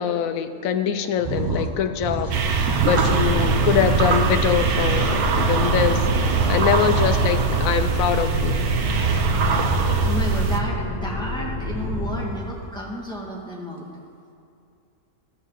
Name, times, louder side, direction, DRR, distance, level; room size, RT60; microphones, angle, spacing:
voice 1, 0.0-2.4 2.8-8.7, left 8 dB, 70° left, 8 dB, 1.0 m, -23 dB
sound 1, 1.2-1.7 2.0-2.4 2.7-5.0 5.5-7.4 8.7-10.2 11.6-12.6, right 3 dB, 20° right, 0.8 m, -29 dB
sound 2, 2.3-10.6, right 5 dB, 80° right, 1.3 m, -22 dB
sound 3, 2.8-12.1, left 2 dB, 35° right, 2.4 m, -29 dB
voice 2, 10.0-13.9, equal, 5° left, -5 dB, 1.8 m, -31 dB
13.5 x 4.8 x 8.2 m, 2.5 s
omnidirectional pair, 1.5 m